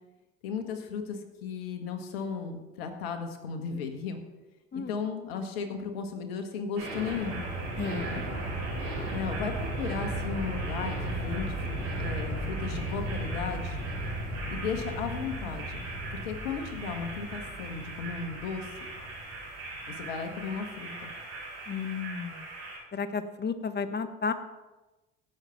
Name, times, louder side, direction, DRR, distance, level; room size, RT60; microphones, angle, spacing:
voice 1, 0.4-4.2 4.7-7.4 8.0-8.2 9.1-13.8 14.5-15.7 16.1-18.7 19.9-21.1, left 6 dB, 85° left, 6 dB, 1.7 m, -35 dB
sound 1, 6.8-22.8, right 1 dB, 85° right, 5.2 m, -35 dB
voice 2, 7.8-8.4 21.7-22.4 22.9-24.3, left 5 dB, 35° left, 10 dB, 1.4 m, -33 dB
16.5 x 6.8 x 5.9 m, 1.1 s
hypercardioid pair, 65°, 29 cm